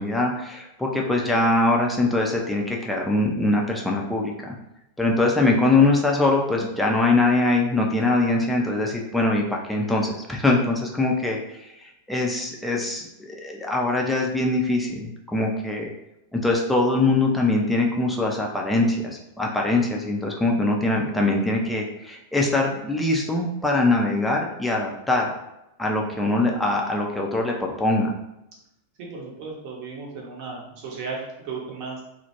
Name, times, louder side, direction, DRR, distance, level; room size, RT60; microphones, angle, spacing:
voice 1, 0.0-4.6 5.0-11.4 12.1-15.9 16.3-25.3 25.8-28.1, left 2 dB, 5° left, -1 dB, 0.4 m, -22 dB
voice 2, 29.0-32.0, right 4 dB, 45° right, -2 dB, 0.8 m, -35 dB
2.3 x 2.1 x 2.9 m, 0.88 s
figure-of-eight pair, 90°, 0 cm